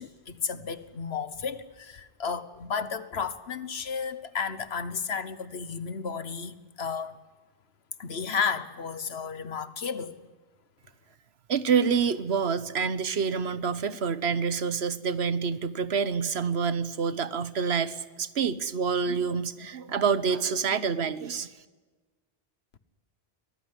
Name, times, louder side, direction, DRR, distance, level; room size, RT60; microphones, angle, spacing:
voice 1, 0.0-7.2 8.0-10.2, left 5 dB, 75° left, 14 dB, 1.5 m, -33 dB
voice 2, 11.5-21.5, right 6 dB, 80° right, 15 dB, 1.3 m, -27 dB
24.0 x 18.5 x 9.9 m, 1.3 s
omnidirectional pair, 1.1 m